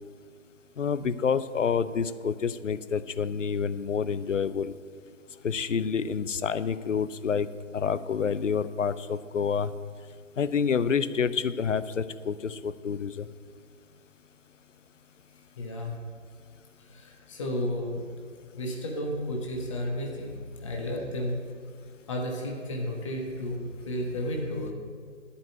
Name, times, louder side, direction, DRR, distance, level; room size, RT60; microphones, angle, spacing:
voice 1, 0.8-4.7 5.4-7.5 7.7-9.7 10.4-13.3, left 6 dB, 70° left, 15 dB, 0.7 m, -28 dB
voice 2, 15.6-15.9 16.9-18.0 18.5-21.4 22.1-24.7, left 1 dB, 25° left, 0 dB, 1.1 m, -32 dB
11.5 x 5.4 x 8.3 m, 2.2 s
figure-of-eight pair, 155°, 39 cm